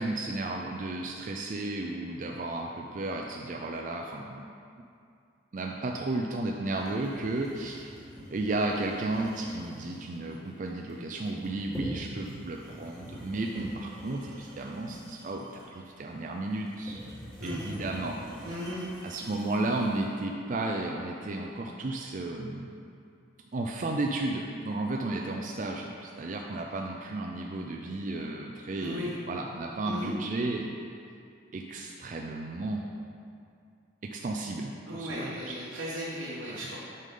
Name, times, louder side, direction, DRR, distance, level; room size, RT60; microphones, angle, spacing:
voice 1, 0.0-4.5 5.5-7.9 8.3-17.0 17.4-18.2 19.0-22.7 23.5-30.8 31.5-32.8 34.0-35.9 36.5-36.7, right 2 dB, 40° right, 0 dB, 0.4 m, -33 dB
sound 1, 6.7-20.0, equal, ahead, 1.5 m, -45 dB
voice 2, 18.4-18.8 28.8-29.1 29.9-30.1 34.9-36.8, equal, 85° right, -7 dB, 1.2 m, -36 dB
8.2 x 5.4 x 3.8 m, 2.4 s
head